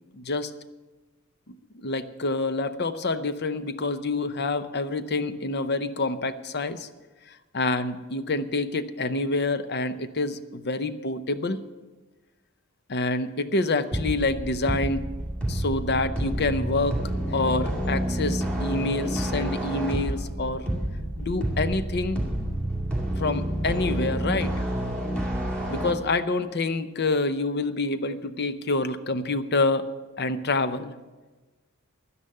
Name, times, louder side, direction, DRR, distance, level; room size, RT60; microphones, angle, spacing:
voice 1, 0.1-0.5 1.5-6.9 7.3-11.6 12.9-15.1 15.5-20.7 21.2-22.2 23.2-24.5 25.7-29.9 30.2-30.9, left 3 dB, 45° left, 11 dB, 0.6 m, -27 dB
sound 1, 13.9-25.9, right 1 dB, 5° left, 2.1 m, -29 dB
12.0 x 10.0 x 6.6 m, 1.2 s
head